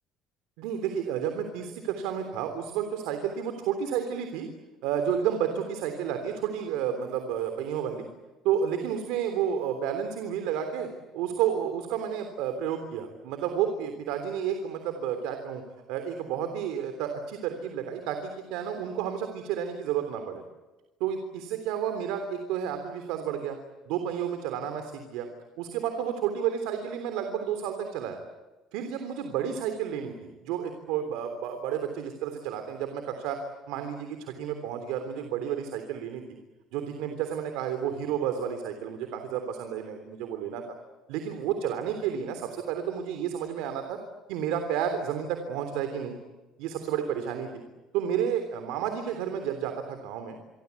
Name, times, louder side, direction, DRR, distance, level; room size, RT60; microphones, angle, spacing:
voice 1, 0.6-4.5 4.8-8.1 8.4-10.9 11.1-15.6 15.9-20.4 21.0-23.6 23.9-25.3 25.6-28.2 28.7-33.4 33.7-36.2 36.7-40.6 41.1-44.0 44.3-46.2 46.6-47.6 47.9-50.4, right 9 dB, 85° right, 7 dB, 3.4 m, -31 dB
27.5 x 24.5 x 8.4 m, 1.1 s
cardioid pair, 170°, 0 cm